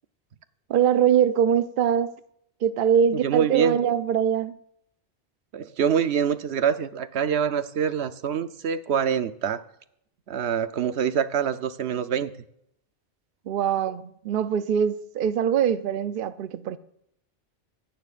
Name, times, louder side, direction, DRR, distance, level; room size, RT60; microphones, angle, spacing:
voice 1, 0.7-2.1 2.6-4.5 13.5-16.8, right 8 dB, 60° right, 0.7 m, -23 dB
voice 2, 3.1-3.8 5.5-9.6 10.3-12.3, right 7 dB, 80° right, 1.0 m, -25 dB
25.5 x 10.5 x 2.5 m
omnidirectional pair, 1.1 m